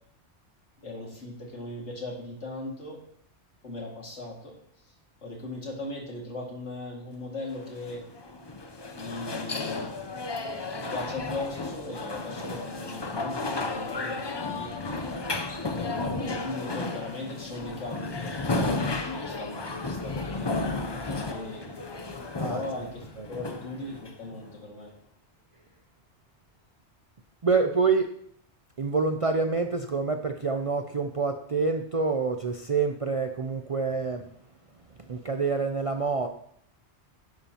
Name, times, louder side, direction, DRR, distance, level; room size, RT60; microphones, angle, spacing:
voice 1, 0.8-3.0 3.6-4.6 5.2-8.0 9.0-10.0 10.7-14.7 15.6-18.5 19.1-21.7 22.4-24.9, left 2 dB, 80° left, -1 dB, 2.6 m, -38 dB
sound 1, 7.5-24.5, left 3 dB, 30° left, 0.6 m, -33 dB
voice 2, 22.4-22.9 23.2-23.3 27.4-28.2 28.8-34.3 35.0-36.3, right 4 dB, 45° right, 6 dB, 0.5 m, -27 dB
11.5 x 10.5 x 2.9 m, 0.66 s
omnidirectional pair, 1.2 m